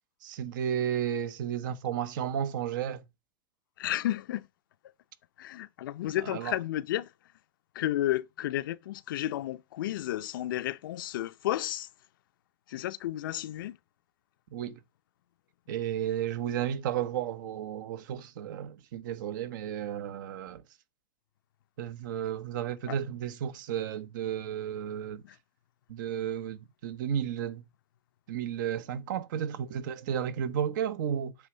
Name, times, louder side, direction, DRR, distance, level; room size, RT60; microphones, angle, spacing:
voice 1, 0.2-3.1 6.2-6.5 14.5-14.8 15.7-20.6 21.8-25.2 25.9-27.6 28.3-31.4, right 9 dB, 70° right, 0.9 m, -33 dB
voice 2, 3.8-4.5 5.4-7.1 7.7-11.9 12.7-13.8 22.9-23.0 25.2-25.4, left 14 dB, 80° left, 0.5 m, -32 dB
8.1 x 3.4 x 6.1 m
supercardioid pair, 140°, 11 cm